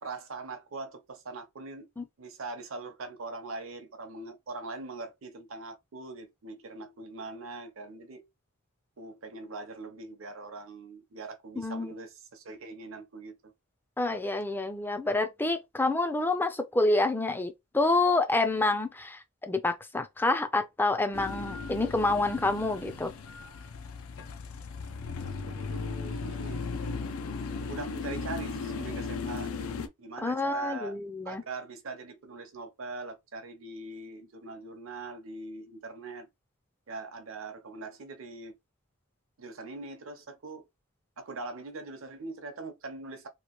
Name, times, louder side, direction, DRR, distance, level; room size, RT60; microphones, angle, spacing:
voice 1, 0.0-1.9 2.2-8.2 9.0-13.5 25.2-26.6 27.7-29.7 30.0-31.0 31.2-36.3 36.9-38.5 39.4-40.6 41.2-43.3, right 3 dB, 70° right, 0.7 m, -42 dB
voice 2, 11.6-11.9 14.0-23.1 30.2-31.4, left 2 dB, 10° left, 0.4 m, -28 dB
sound 1, 21.1-29.9, left 4 dB, 80° left, 0.5 m, -36 dB
2.9 x 2.5 x 3.0 m
head